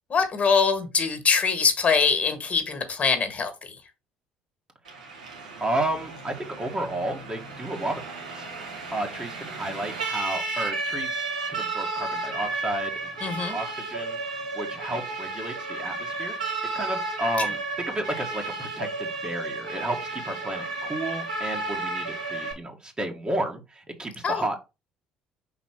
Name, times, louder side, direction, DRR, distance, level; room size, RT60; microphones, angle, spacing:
voice 1, 0.1-3.8 13.2-13.6 24.2-24.4, left 5 dB, 35° left, 8 dB, 1.6 m, -23 dB
Siren, 4.8-22.5, right 3 dB, 85° right, 1.5 m, -33 dB
voice 2, 5.6-8.0 8.3-8.4 8.9-13.0 13.2-14.2 14.5-16.3 16.7-24.6, right 1 dB, 25° right, 3 dB, 1.7 m, -32 dB
5.3 x 4.1 x 4.6 m, 0.27 s
figure-of-eight pair, 55°, 4 cm